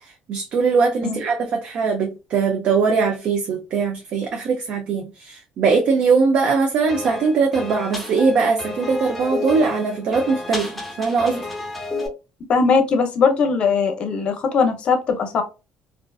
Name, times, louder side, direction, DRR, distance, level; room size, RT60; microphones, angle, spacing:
voice 1, 0.0-10.7 11.0-11.5, right 4 dB, 55° right, 0.4 m, -21 dB
sound 1, 6.9-12.1, left 2 dB, ahead, 0.8 m, -31 dB
voice 2, 12.5-15.4, left 5 dB, 45° left, 0.6 m, -19 dB
2.4 x 2.3 x 2.3 m
cardioid pair, 120°, 3 cm